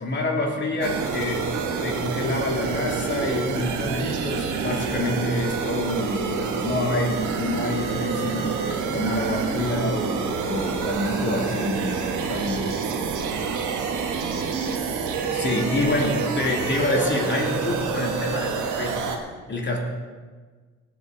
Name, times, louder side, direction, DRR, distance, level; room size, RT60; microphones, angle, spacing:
voice 1, 0.0-1.4 1.8-12.6 15.3-19.0 19.5-19.8, left 1 dB, 40° left, 0 dB, 3.0 m, -27 dB
sound 1, 0.8-19.2, right 5 dB, 80° right, 1.6 m, -28 dB
18.5 x 8.7 x 4.1 m, 1.4 s
cardioid pair, 90°, 30 cm